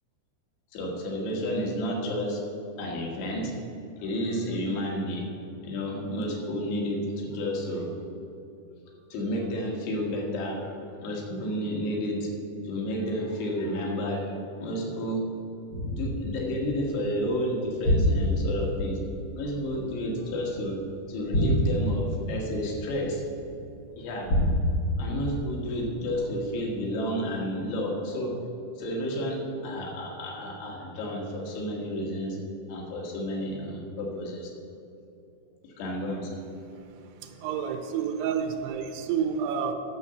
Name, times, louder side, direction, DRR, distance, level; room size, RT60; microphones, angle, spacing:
voice 1, 0.7-2.4 2.8-3.5 4.0-5.3 5.6-7.9 9.1-12.3 12.6-15.3 15.8-19.0 19.4-20.8 21.1-23.2 24.0-24.3 25.0-28.4 28.8-32.4 32.7-34.5 35.6-36.4, equal, 90° left, -1 dB, 3.7 m, -31 dB
sound 1, 15.7-20.7 21.2-23.6 24.2-26.3 26.8-26.9, left 1 dB, 45° left, 1.6 m, -28 dB
voice 2, 37.2-39.7, right 7 dB, 90° right, 3 dB, 2.8 m, -29 dB
9.4 x 7.0 x 6.8 m, 2.7 s
omnidirectional pair, 4.7 m